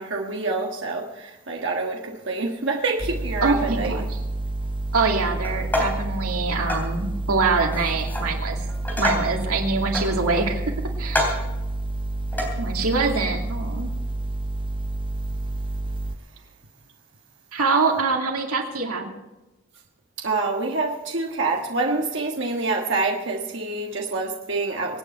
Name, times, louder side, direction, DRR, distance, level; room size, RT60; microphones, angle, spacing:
voice 1, 0.0-3.9 20.2-25.0, right 3 dB, 55° right, 0 dB, 1.5 m, -26 dB
sound 1, 3.0-16.2, right 2 dB, 20° right, 0.6 m, -29 dB
voice 2, 3.4-4.2 4.9-8.6 9.0-10.7 11.0-11.4 12.6-13.9 17.5-19.1, right 3 dB, 90° right, 1 dB, 2.5 m, -24 dB
sound 2, 5.4-6.1 6.7-6.9 7.7-8.3 8.7-9.4 9.9-10.6 11.1-11.5 12.3-12.5, left 1 dB, 10° left, 3.4 m, -27 dB
25.0 x 9.2 x 4.5 m, 1.0 s
head